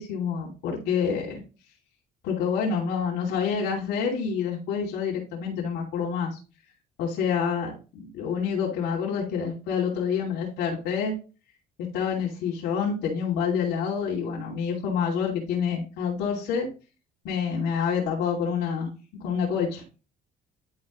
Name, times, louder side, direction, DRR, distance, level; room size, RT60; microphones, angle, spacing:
voice 1, 0.0-1.4 2.2-6.4 7.0-11.1 11.9-16.7 17.2-18.9 19.2-19.8, left 6 dB, 90° left, -4 dB, 2.6 m, -27 dB
11.0 x 4.5 x 3.1 m, 0.32 s
cardioid pair, 110°, 17 cm